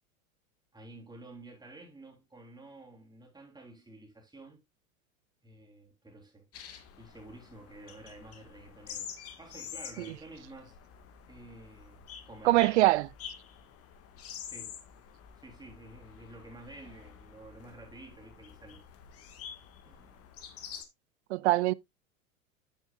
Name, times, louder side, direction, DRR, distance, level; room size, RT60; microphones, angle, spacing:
voice 1, 0.7-4.6 5.4-6.5 7.0-10.8 11.3-12.9 14.5-14.8 15.4-18.8 19.8-20.2, right 2 dB, 10° right, 3.3 m, -51 dB
sound 1, 6.5-20.8, left 8 dB, 35° left, 1.6 m, -48 dB
voice 2, 12.4-13.1 21.3-21.7, right 18 dB, 55° right, 0.5 m, -23 dB
9.1 x 9.0 x 2.3 m
figure-of-eight pair, 85°, 42 cm